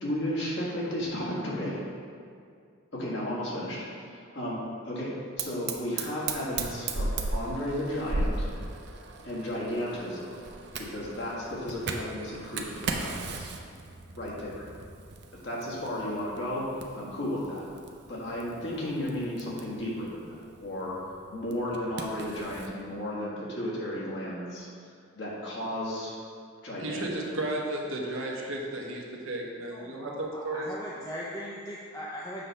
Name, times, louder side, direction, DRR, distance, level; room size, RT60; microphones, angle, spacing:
voice 1, 0.0-1.8 2.9-8.5 9.2-10.3 10.8-13.5 14.2-14.6 15.4-16.7 16.9-17.6 18.1-21.0 21.3-24.7 25.2-26.1 26.6-27.1, left 1 dB, 60° left, -6 dB, 1.7 m, -34 dB
Fire, 5.4-22.7, right 3 dB, 55° right, 0.5 m, -37 dB
voice 2, 26.8-30.7, right 1 dB, 80° right, -1 dB, 1.0 m, -34 dB
voice 3, 29.7-32.5, equal, 15° left, -6 dB, 0.5 m, -39 dB
7.5 x 3.4 x 5.5 m, 2.3 s
head